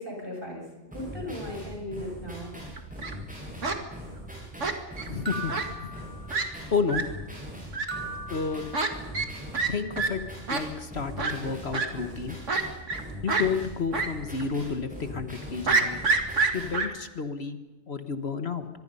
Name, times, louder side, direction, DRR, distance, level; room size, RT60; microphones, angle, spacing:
voice 1, 0.0-2.5, left 1 dB, 45° right, 1 dB, 7.4 m, -37 dB
sound 1, 0.9-16.8, equal, 5° right, 8.0 m, -41 dB
Fowl, 2.7-3.1 3.6-3.8 4.6-5.1 5.5-5.7 6.0-6.1 6.3-6.4 6.9-7.0 7.7-7.8 8.7-8.9 9.1-9.3 9.5-9.7 10.0-10.1 10.5-10.6 11.2-11.3 11.7-11.9 12.5-13.0 13.3-13.4 13.9-14.1 14.4-14.5 15.7-16.9, right 4 dB, 85° right, 2.4 m, -26 dB
voice 2, 5.1-5.5 5.8-6.0 6.7-7.0 8.3-8.6 9.7-10.2 10.5-12.4 13.2-16.0 16.5-17.6 17.9-18.7, left 5 dB, 60° left, 8 dB, 1.6 m, -30 dB
sound 2, 5.3-6.7 7.9-9.3, right 3 dB, 25° left, 2.8 m, -39 dB
25.0 x 22.0 x 5.5 m, 1.2 s
omnidirectional pair, 1.2 m